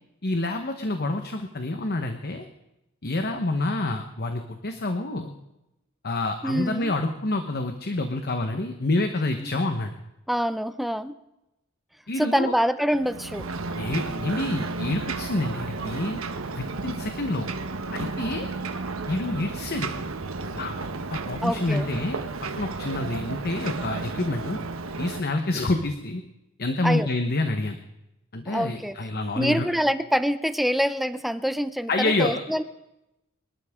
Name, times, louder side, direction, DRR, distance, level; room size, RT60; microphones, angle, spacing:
voice 1, 0.2-2.4 3.0-5.3 6.0-9.9 12.1-12.5 13.8-16.2 16.5-17.5 17.9-18.5 19.1-19.9 20.5-22.2 22.5-24.6 25.0-26.2 26.6-27.8 28.3-29.7 31.9-32.4, left 2 dB, 50° left, 6 dB, 1.2 m, -27 dB
voice 2, 6.4-6.9 9.4-9.6 10.3-11.1 12.2-13.5 21.4-21.9 26.8-27.1 28.5-29.0 29.4-32.6, equal, ahead, 12 dB, 0.5 m, -25 dB
Ocean, 12.9-25.2, right 3 dB, 85° right, 1.2 m, -33 dB
24.5 x 12.5 x 3.7 m, 0.91 s
head